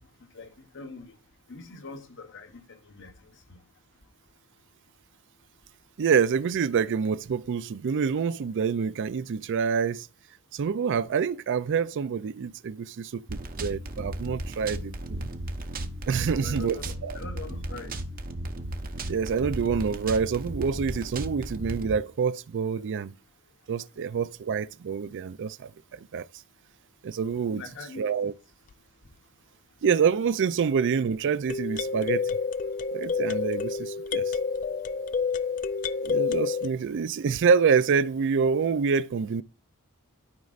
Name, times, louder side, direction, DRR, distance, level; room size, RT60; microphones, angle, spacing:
voice 1, 0.3-1.2 1.5-3.1 3.5-3.6 16.2-17.9 27.5-28.1, left 3 dB, 60° left, 1.2 m, -43 dB
voice 2, 6.0-10.1 10.5-15.3 16.1-17.2 19.1-23.1 23.7-26.3 27.0-27.6 28.0-28.3 29.8-32.2 32.9-34.4 36.0-39.4, right 6 dB, 55° right, 0.4 m, -27 dB
sound 1, 13.3-21.9, right 1 dB, 40° right, 0.8 m, -35 dB
sound 2, 28.7-28.8 31.5-36.7, left 5 dB, 35° left, 0.3 m, -29 dB
12.5 x 5.2 x 2.5 m
head